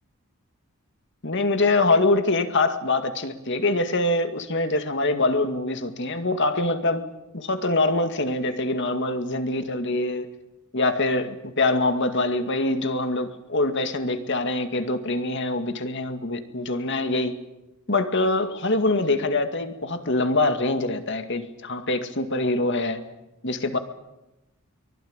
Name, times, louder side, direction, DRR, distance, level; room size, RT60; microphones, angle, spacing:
voice 1, 1.2-10.3 10.7-17.4 17.9-23.1 23.4-23.8, left 2 dB, 55° left, 8 dB, 2.1 m, -24 dB
23.5 x 21.0 x 9.0 m, 0.96 s
head